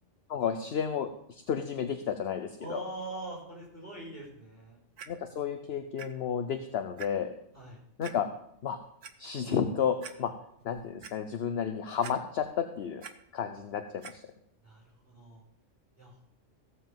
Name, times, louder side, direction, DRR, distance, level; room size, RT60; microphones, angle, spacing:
voice 1, 0.3-2.8 5.1-7.3 8.0-8.3 8.6-8.8 9.2-10.3 10.6-13.0 13.3-14.2, left 7 dB, 60° left, 8 dB, 1.0 m, -32 dB
voice 2, 2.6-4.8 7.5-7.8 14.6-15.4 16.0-16.2, right 2 dB, 10° left, -5 dB, 5.3 m, -42 dB
Clock, 5.0-5.1 6.0-6.1 6.5-6.6 7.0-7.1 8.0-8.2 8.8-9.1 9.6-9.7 10.0-10.1 10.6-11.1 12.0-12.5 12.8-13.1 14.0-14.1 14.9-15.0, right 7 dB, 80° right, 1.2 m, -45 dB
15.0 x 5.6 x 7.3 m, 0.73 s
omnidirectional pair, 1.2 m